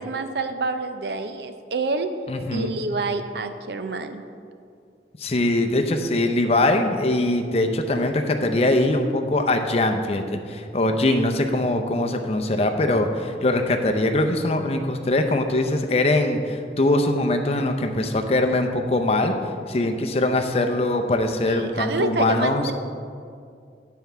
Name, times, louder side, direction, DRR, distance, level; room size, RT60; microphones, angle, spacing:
voice 1, 0.0-2.1 2.5-4.2 21.5-22.7, right 3 dB, 65° right, 8 dB, 0.6 m, -27 dB
voice 2, 2.3-2.7 5.2-19.3 19.7-22.6, left 2 dB, 35° left, 5 dB, 0.6 m, -22 dB
9.3 x 4.6 x 6.7 m, 2.3 s
head